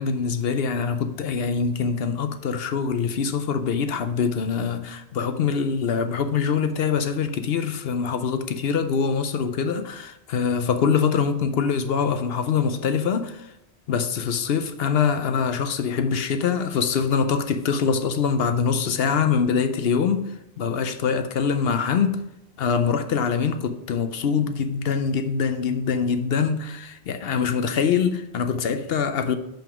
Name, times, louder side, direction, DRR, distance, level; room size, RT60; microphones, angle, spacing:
voice 1, 0.0-13.5 13.9-22.2 22.6-29.4, left 6 dB, 65° left, 0.8 m, -24 dB
5.8 x 5.2 x 6.1 m
omnidirectional pair, 1.2 m